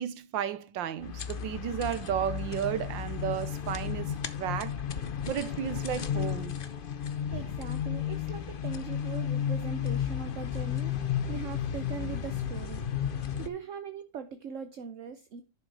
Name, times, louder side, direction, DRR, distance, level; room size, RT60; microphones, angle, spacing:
voice 1, 0.0-4.7 5.3-6.5, right 9 dB, 75° right, 1.5 m, -33 dB
sound 1, 1.0-13.5, left 9 dB, 55° left, 0.5 m, -33 dB
voice 2, 7.3-10.9 11.3-12.8 13.4-15.4, right 7 dB, 55° right, 0.9 m, -40 dB
11.0 x 6.2 x 3.3 m
omnidirectional pair, 2.0 m